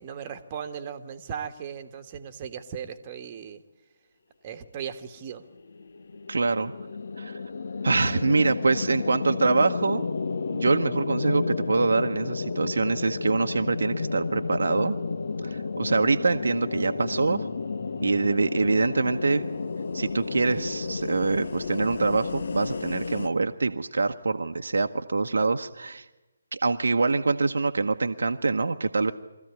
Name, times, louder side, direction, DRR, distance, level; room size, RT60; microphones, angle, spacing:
voice 1, 0.0-3.6 4.4-5.4, right 7 dB, 30° right, 6 dB, 1.5 m, -37 dB
sound 1, 5.5-23.3, left 4 dB, 55° left, 0.9 m, -32 dB
voice 2, 6.3-6.7 7.2-7.4 7.8-10.1 10.5-15.0 15.4-17.5 18.0-19.4 19.9-26.0 26.5-29.1, right 3 dB, 65° right, 6 dB, 1.0 m, -25 dB
23.5 x 14.0 x 9.6 m, 1.1 s
figure-of-eight pair, 145°, 0 cm